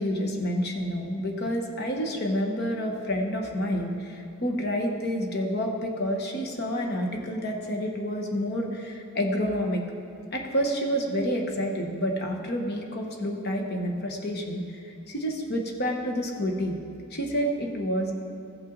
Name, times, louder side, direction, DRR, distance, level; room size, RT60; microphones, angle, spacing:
voice 1, 0.0-9.8 10.3-16.7 17.1-18.1, equal, 50° left, 2 dB, 1.1 m, -29 dB
15.0 x 5.7 x 3.9 m, 2.7 s
head